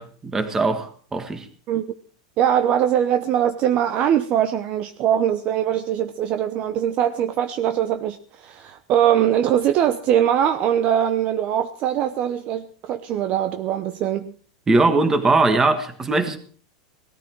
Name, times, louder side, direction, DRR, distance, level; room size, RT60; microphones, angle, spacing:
voice 1, 0.0-1.5 14.7-16.4, right 3 dB, 15° right, 1.7 m, -20 dB
voice 2, 2.4-14.3, right 10 dB, 35° right, 0.8 m, -22 dB
18.5 x 13.5 x 4.6 m
supercardioid pair, 155°, 4 cm